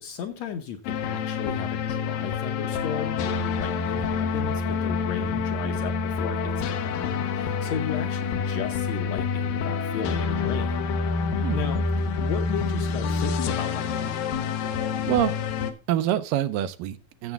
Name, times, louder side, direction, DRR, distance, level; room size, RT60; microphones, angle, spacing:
voice 1, 0.0-6.5 6.8-10.7 11.5-11.8 12.2-14.1, left 7 dB, 70° left, 5 dB, 1.8 m, -35 dB
sound 1, 0.9-15.7, left 5 dB, 90° left, 2.8 m, -27 dB
voice 2, 15.1-15.4 15.9-17.3, right 12 dB, 85° right, 11 dB, 2.4 m, -26 dB
15.0 x 7.2 x 3.4 m, 0.30 s
omnidirectional pair, 3.9 m